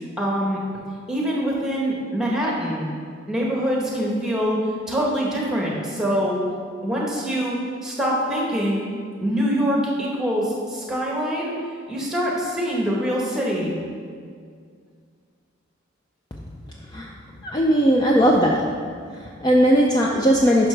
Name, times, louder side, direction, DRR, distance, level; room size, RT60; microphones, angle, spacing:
voice 1, 0.2-0.6 1.1-2.8 3.3-4.6 4.9-6.4 6.8-8.8 9.2-11.5 11.9-13.7, equal, 5° right, -3 dB, 1.2 m, -24 dB
voice 2, 17.4-18.7 19.1-20.7, equal, 20° left, -1 dB, 0.4 m, -18 dB
10.5 x 5.7 x 3.3 m, 2.1 s
head